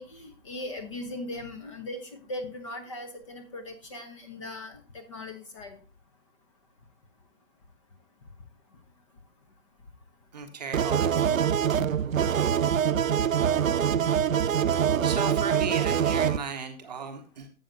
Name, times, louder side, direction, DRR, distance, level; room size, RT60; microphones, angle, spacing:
voice 1, 0.0-5.8, left 1 dB, 20° left, 6 dB, 0.9 m, -39 dB
voice 2, 10.3-11.5 15.0-17.5, right 5 dB, 30° right, 5 dB, 1.0 m, -35 dB
sound 1, 10.7-16.4, right 8 dB, 70° right, 0.5 m, -24 dB
12.0 x 7.6 x 2.6 m, 0.34 s
figure-of-eight pair, 140°, 42 cm